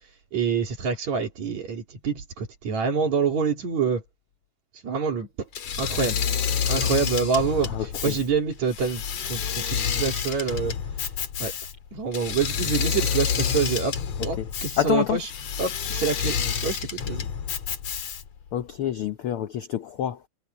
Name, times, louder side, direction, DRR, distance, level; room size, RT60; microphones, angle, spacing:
voice 1, 0.3-4.0 4.8-5.3 5.8-6.2 6.7-10.8 11.4-11.5 11.9-15.3 15.6-17.3, right 6 dB, 60° right, 4.1 m, -26 dB
Engine / Mechanisms, 5.5-18.4, left 7 dB, 55° left, 2.7 m, -28 dB
voice 2, 7.6-8.2 14.4-14.5 14.8-15.2 18.5-20.2, left 11 dB, 75° left, 1.2 m, -27 dB
omnidirectional pair, 3.7 m